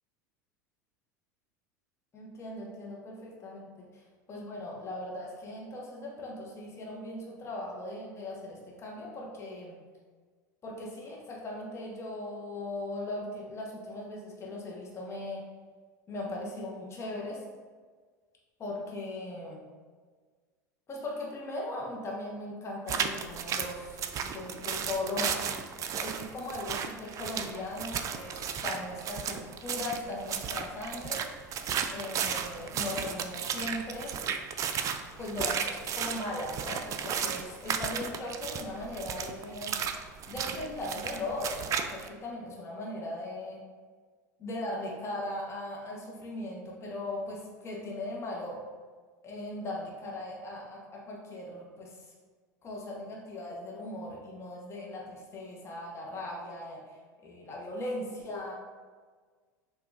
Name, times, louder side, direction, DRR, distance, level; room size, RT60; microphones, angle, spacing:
voice 1, 2.1-4.0 4.3-9.8 10.6-15.4 16.1-17.4 18.6-19.6 20.9-25.4 25.8-28.4 28.6-31.2 31.9-34.2 35.2-39.8 40.3-43.6 44.4-48.6 49.2-52.1 52.6-57.0 57.2-58.5, left 1 dB, 30° left, -3 dB, 1.3 m, -38 dB
sound 1, 22.9-42.1, right 7 dB, 35° right, 0.4 m, -34 dB
6.7 x 2.8 x 2.6 m, 1.5 s
figure-of-eight pair, 80°, 10 cm